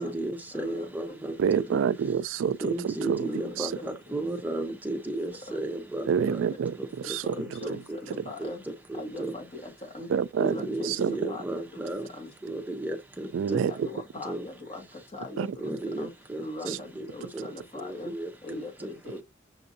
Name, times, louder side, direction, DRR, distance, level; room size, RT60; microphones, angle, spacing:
voice 1, 0.0-1.8 2.6-6.4 6.8-6.9 7.4-7.7 8.4-8.5 8.9-9.3 10.4-12.1 12.4-13.9 14.2-14.4 15.6-17.1 17.3-17.5 17.8-18.3, right 1 dB, 10° right, 0.7 m, -34 dB
voice 2, 0.6-1.2 3.3-3.5 5.5-5.6 6.2-6.4 7.4-7.8 8.1-8.6 9.0-10.1 10.4-11.0 11.3-11.4 12.2-12.3 13.5-14.8 15.1-15.5 16.0-16.1 16.4-18.1 18.4-18.7 19.0-19.2, left 2 dB, 30° left, 1.4 m, -40 dB
voice 3, 1.4-3.7 6.1-7.8 10.1-10.5 10.8-11.3 13.3-13.9 15.4-15.6 16.7-16.8, right 7 dB, 75° right, 0.3 m, -28 dB
6.8 x 2.6 x 2.6 m
head